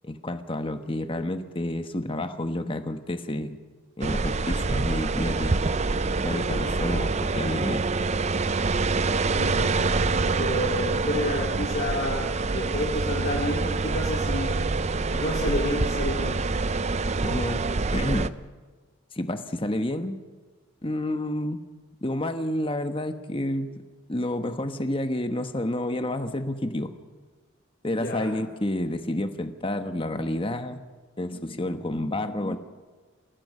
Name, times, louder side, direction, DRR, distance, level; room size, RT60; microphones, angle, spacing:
voice 1, 0.0-3.6 4.0-5.6 6.2-7.9 17.2-17.7 17.9-18.4 19.1-20.2 20.8-21.6 22.0-23.7 24.1-26.9 27.8-30.8 31.2-32.6, left 1 dB, 25° left, 8 dB, 1.2 m, -29 dB
sound 1, 4.0-18.3, right 3 dB, 30° right, 0.5 m, -26 dB
voice 2, 9.2-14.7 15.1-16.4 27.9-28.3, left 1 dB, 50° left, -2 dB, 2.5 m, -30 dB
29.0 x 17.0 x 5.6 m, 1.4 s
head